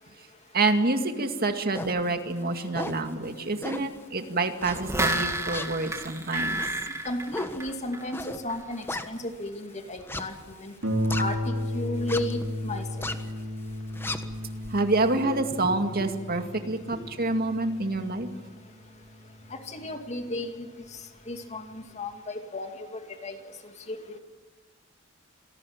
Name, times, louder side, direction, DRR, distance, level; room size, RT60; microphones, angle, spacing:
voice 1, 0.5-6.6 14.7-18.3, right 2 dB, 50° right, 6 dB, 2.2 m, -27 dB
sound 1, 1.7-2.0 2.5-3.1 3.6-4.0 4.6-5.1 5.5-9.5 10.0-11.6 12.0-12.4 12.8-13.3 13.7-15.2, left 1 dB, 10° left, 1.4 m, -36 dB
sound 2, 4.6-8.2 8.5-8.6, right 1 dB, 15° right, 3.0 m, -30 dB
voice 2, 7.1-10.7 11.1-13.1 15.3-15.7 16.9-17.0 19.5-20.7 21.3-23.4 23.9-24.2, left 2 dB, 35° left, 5 dB, 2.4 m, -34 dB
Harp, 10.8-20.0 20.8-20.9 21.4-21.5, equal, 75° right, 3.7 m, -34 dB
26.5 x 18.5 x 8.8 m, 1.4 s
head